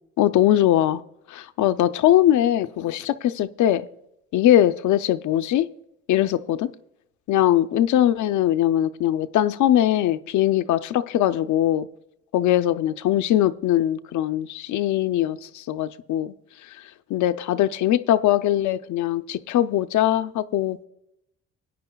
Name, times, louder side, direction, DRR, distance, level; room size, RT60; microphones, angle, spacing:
voice 1, 0.2-1.0 1.3-3.9 4.3-5.7 6.1-6.7 7.3-11.9 12.3-16.3 16.6-16.8 17.1-20.9, left 12 dB, 75° left, 0.6 m, -21 dB
18.5 x 9.7 x 2.3 m
cardioid pair, 90°, 30 cm